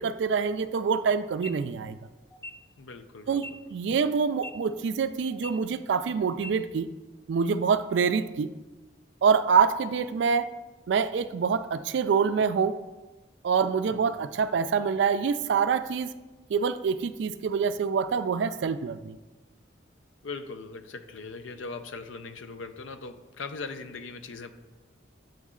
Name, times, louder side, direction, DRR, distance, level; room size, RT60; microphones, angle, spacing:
voice 1, 0.0-2.0 3.3-6.9 7.3-8.5 9.2-10.5 10.9-12.8 13.4-16.1 16.5-19.2, right 6 dB, 70° right, 13 dB, 0.3 m, -26 dB
sound 1, 1.3-1.5 2.3-2.5 3.3-3.5 4.3-4.5 5.3-5.5 6.3-6.5, left 1 dB, 15° left, 0.4 m, -40 dB
voice 2, 2.8-3.6 13.9-14.0 20.2-24.5, left 4 dB, 80° left, 10 dB, 0.5 m, -40 dB
7.7 x 4.1 x 3.7 m, 1.1 s
head